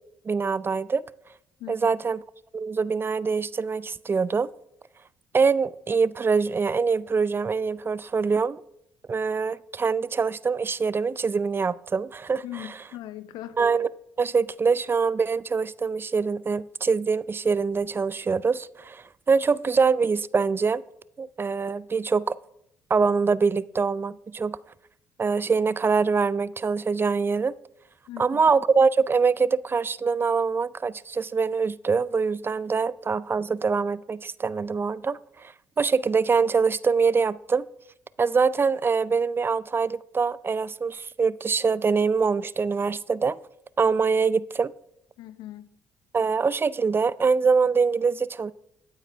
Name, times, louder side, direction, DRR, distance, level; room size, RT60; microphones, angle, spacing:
voice 1, 0.3-1.0 1.7-2.2 2.5-4.5 5.3-8.6 9.1-12.4 13.6-13.9 14.2-20.8 21.2-22.4 22.9-24.6 25.2-27.5 28.2-37.7 38.2-43.4 43.8-44.7 46.1-48.5, right 5 dB, 30° right, 0.4 m, -24 dB
voice 2, 12.4-13.6 28.1-28.4 45.2-45.7, left 13 dB, 75° left, 0.7 m, -39 dB
14.0 x 9.0 x 3.5 m
hypercardioid pair, 55°, 7 cm